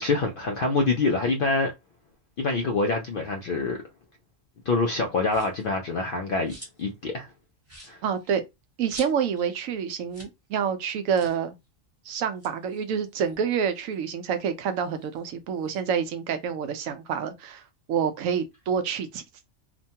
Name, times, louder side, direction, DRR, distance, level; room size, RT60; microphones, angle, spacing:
voice 1, 0.0-1.7 2.4-3.8 4.7-7.3 7.8-8.0, left 3 dB, 65° left, 0.5 m, -26 dB
sound 1, 5.2-5.7 6.1-7.0 7.3-7.4 7.6-9.5 9.8-9.9 10.1-10.4 10.7-10.8 11.1-11.5 12.2-13.9 14.4-15.8, equal, 10° right, 1.0 m, -47 dB
voice 2, 8.0-8.4 8.8-11.6 12.1-17.6 17.9-19.2, right 7 dB, 85° right, 1.0 m, -27 dB
3.0 x 2.2 x 2.7 m
omnidirectional pair, 1.4 m